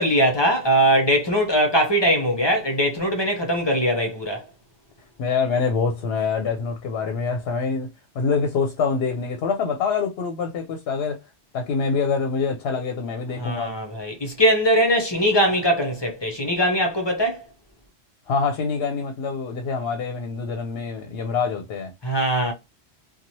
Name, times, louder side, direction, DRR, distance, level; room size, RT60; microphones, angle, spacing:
voice 1, 0.0-4.4 13.4-17.4 22.0-22.5, equal, 30° left, 0.6 m, -21 dB
voice 2, 5.2-11.2 11.5-13.7 18.3-21.9, left 5 dB, 65° left, 0.8 m, -25 dB
2.9 x 2.3 x 2.6 m
omnidirectional pair, 1.2 m